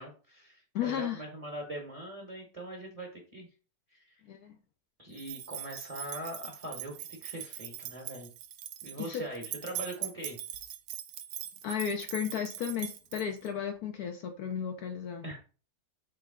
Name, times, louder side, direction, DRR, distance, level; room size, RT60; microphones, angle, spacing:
voice 1, 0.0-3.5 3.9-4.2 5.0-8.3 8.8-10.7 15.2-15.4, right 1 dB, 25° right, 0 dB, 0.9 m, -42 dB
voice 2, 0.7-1.2 4.2-4.6 9.0-9.2 11.6-15.2, left 8 dB, 70° left, 5 dB, 1.0 m, -34 dB
sound 1, 5.2-13.5, right 11 dB, 80° right, 1.2 m, -41 dB
4.5 x 3.2 x 3.6 m, 0.36 s
omnidirectional pair, 1.9 m